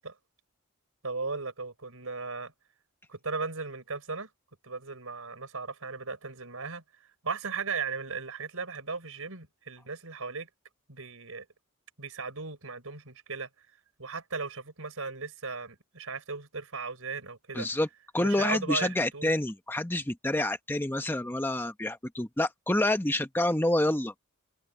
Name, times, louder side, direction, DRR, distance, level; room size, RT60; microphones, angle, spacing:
voice 1, 1.0-2.5 3.1-4.3 4.6-10.5 10.9-11.4 12.0-13.5 14.0-17.7 18.2-19.3, right 4 dB, 70° right, 4.5 m, -37 dB
voice 2, 17.5-17.9 18.1-24.2, left 1 dB, 10° left, 0.8 m, -28 dB
head